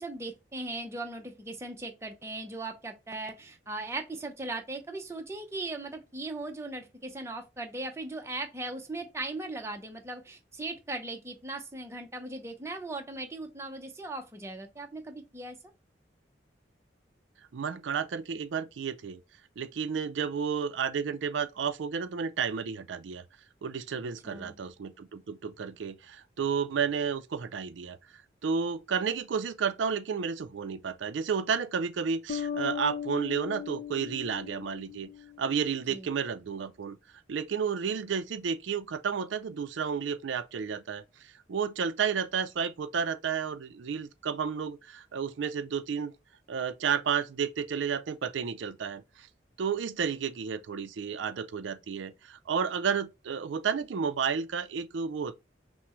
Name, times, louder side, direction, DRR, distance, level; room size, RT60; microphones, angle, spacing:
voice 1, 0.0-15.6 24.2-24.6 35.9-36.1, right 2 dB, 15° right, 0.7 m, -38 dB
voice 2, 17.5-19.2 19.6-23.2 23.6-35.1 35.4-37.0 37.3-46.1 46.5-49.3 49.6-55.4, right 6 dB, 90° right, 0.4 m, -32 dB
sound 1, 32.3-35.6, left 8 dB, 50° left, 0.6 m, -37 dB
5.8 x 2.1 x 3.0 m
head